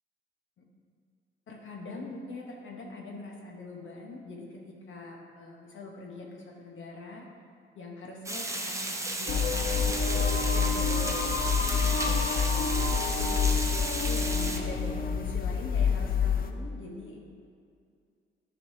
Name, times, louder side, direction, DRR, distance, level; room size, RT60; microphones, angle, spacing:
voice 1, 1.5-7.3 7.7-13.5 14.0-17.2, left 2 dB, 70° left, -1 dB, 1.0 m, -43 dB
Water, 8.3-14.6, right 2 dB, 15° right, 0.7 m, -34 dB
sound 1, 9.3-16.5, left 5 dB, 45° left, 0.5 m, -27 dB
9.7 x 5.4 x 2.7 m, 2.3 s
cardioid pair, 70°, 21 cm